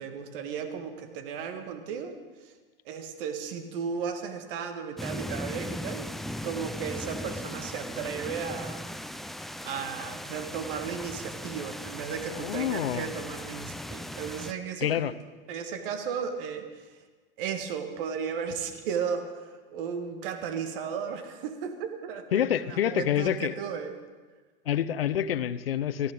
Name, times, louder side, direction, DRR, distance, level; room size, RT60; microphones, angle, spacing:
voice 1, 0.0-2.2 2.4-2.5 2.9-6.1 6.4-8.8 9.6-15.2 15.5-16.9 17.4-23.9, right 6 dB, 65° right, 7 dB, 1.8 m, -35 dB
sound 1, 5.0-14.5, equal, ahead, 0.5 m, -38 dB
voice 2, 12.3-13.1 14.8-15.1 22.3-23.6 24.7-26.1, left 10 dB, 90° left, 16 dB, 0.6 m, -27 dB
18.0 x 14.0 x 3.8 m, 1.3 s
hypercardioid pair, 95°, 29 cm